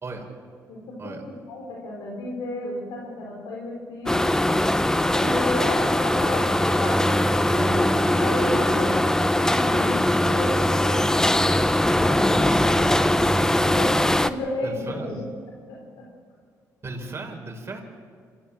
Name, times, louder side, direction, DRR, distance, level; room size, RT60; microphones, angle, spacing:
voice 1, 0.7-1.1 1.5-4.2 5.1-11.3 12.0-15.2 15.7-16.0, left 1 dB, 85° left, -2 dB, 4.0 m, -33 dB
sound 1, 4.1-14.3, left 1 dB, 10° left, 1.0 m, -21 dB
voice 2, 14.6-15.2 16.8-17.8, right 3 dB, 40° right, 2 dB, 4.6 m, -36 dB
26.5 x 14.5 x 7.5 m, 2.1 s
cardioid pair, 80°, 7 cm